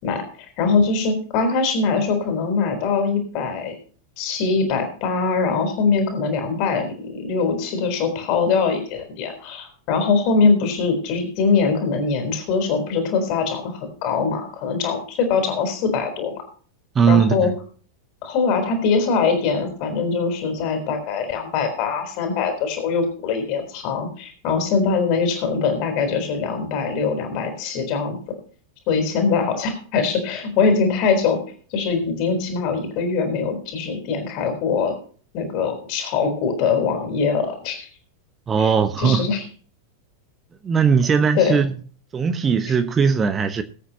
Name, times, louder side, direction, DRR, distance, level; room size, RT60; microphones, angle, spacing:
voice 1, 0.0-3.7 4.2-16.4 17.1-17.5 18.2-28.2 28.9-31.4 31.7-34.9 35.3-37.9 38.6-38.7 39.0-39.4 41.3-41.6, left 5 dB, 45° left, 3.9 m, -22 dB
voice 2, 16.9-17.5 38.5-39.2 40.6-41.7 42.1-43.6, right 6 dB, 20° right, 1.1 m, -19 dB
21.0 x 8.6 x 2.9 m
figure-of-eight pair, 90°, 0 cm